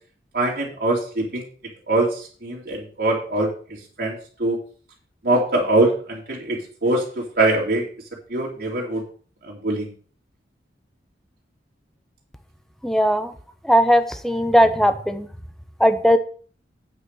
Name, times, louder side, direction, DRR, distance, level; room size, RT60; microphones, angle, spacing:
voice 1, 0.3-1.5 1.9-3.5 4.0-4.6 5.2-7.9 8.3-9.0 9.4-9.9, right 2 dB, 60° right, -2 dB, 2.7 m, -23 dB
voice 2, 12.8-13.3 13.6-15.3 15.8-16.2, equal, ahead, 9 dB, 0.8 m, -18 dB
9.2 x 5.0 x 6.5 m, 0.43 s
head